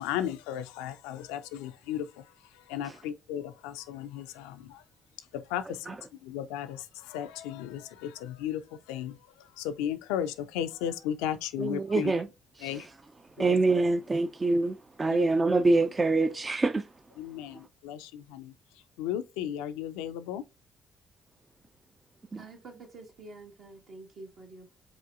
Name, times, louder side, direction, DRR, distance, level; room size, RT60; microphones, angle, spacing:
voice 1, 0.0-2.1 2.7-4.8 5.3-6.0 6.2-8.6 8.9-9.2 9.6-12.1 12.6-12.9 13.4-13.6 15.1-15.3 17.2-18.5 19.0-20.4, left 10 dB, 75° left, 0.3 m, -35 dB
voice 2, 11.6-12.3 12.6-13.0 13.4-16.9 22.3-22.4, right 3 dB, 30° right, 0.4 m, -26 dB
voice 3, 22.4-24.8, right 2 dB, 60° right, 1.3 m, -48 dB
4.8 x 3.8 x 2.4 m
hypercardioid pair, 45°, 0 cm